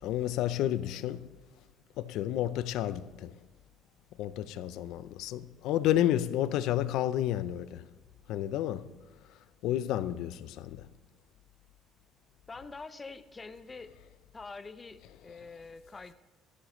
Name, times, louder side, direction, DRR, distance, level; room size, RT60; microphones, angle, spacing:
voice 1, 0.0-1.3 2.0-3.3 4.2-7.9 8.3-8.9 9.6-10.9, left 12 dB, 70° left, 0.5 m, -31 dB
voice 2, 12.5-13.9 14.3-16.1, left 4 dB, 20° left, 0.6 m, -45 dB
15.0 x 14.0 x 3.1 m
cardioid pair, 150°, 0 cm